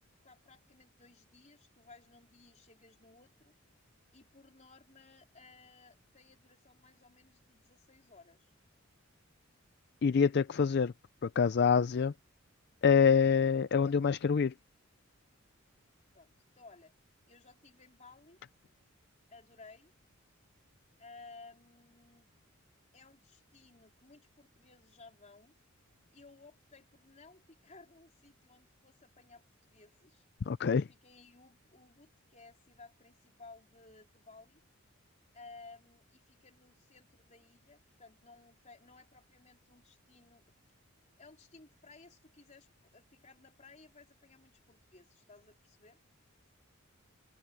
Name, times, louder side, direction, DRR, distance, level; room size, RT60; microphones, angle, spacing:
voice 1, 0.0-3.6 4.1-8.5 16.1-16.9 17.3-18.4 19.3-19.9 21.0-22.3 22.9-25.5 26.1-30.2 30.7-34.6 35.3-40.4 41.2-46.0, left 3 dB, 35° left, 3.8 m, -58 dB
voice 2, 10.0-10.9 11.2-12.1 12.8-14.5 30.5-30.8, left 6 dB, 55° left, 0.4 m, -26 dB
open air
head